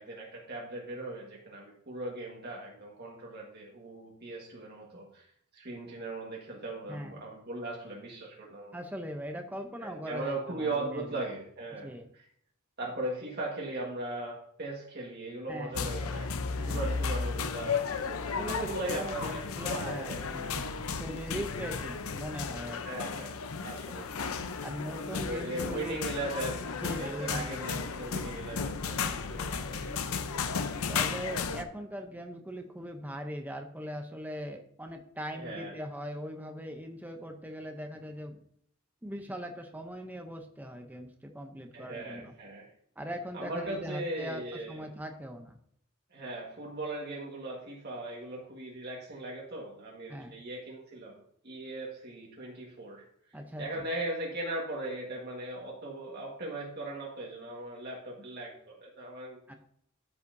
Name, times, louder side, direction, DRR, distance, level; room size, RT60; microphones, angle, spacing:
voice 1, 0.0-5.3 5.5-8.8 9.8-12.2 12.8-20.3 22.8-24.1 25.1-26.7 27.0-30.2 35.3-35.7 41.7-42.7 43.3-44.8 46.1-53.0 53.6-59.4, right 2 dB, 50° right, -2 dB, 1.5 m, -39 dB
voice 2, 6.9-7.2 8.7-11.1 11.7-12.1 15.5-15.9 16.5-16.8 18.4-20.7 21.0-23.1 24.6-26.0 26.8-28.2 29.0-29.3 30.9-38.4 39.0-42.3 43.0-45.6 50.1-50.3 53.3-53.9 59.5-59.6, equal, 10° right, 4 dB, 0.6 m, -40 dB
sound 1, 15.7-31.6, left 5 dB, 90° left, 0.6 m, -34 dB
12.5 x 5.6 x 2.6 m, 0.69 s
head